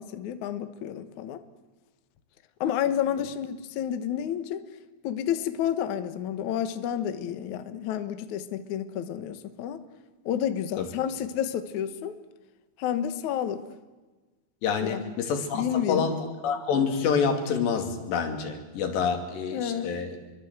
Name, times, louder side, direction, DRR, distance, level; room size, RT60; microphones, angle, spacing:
voice 1, 0.0-1.4 2.6-4.6 5.0-9.8 10.3-12.2 12.8-13.6 14.8-15.1 15.5-16.1 19.5-19.9, left 9 dB, 65° left, 10 dB, 2.1 m, -30 dB
voice 2, 14.6-15.6 15.9-16.2 16.4-20.1, left 6 dB, 90° left, 5 dB, 4.7 m, -27 dB
26.5 x 23.5 x 8.0 m, 1.3 s
omnidirectional pair, 4.8 m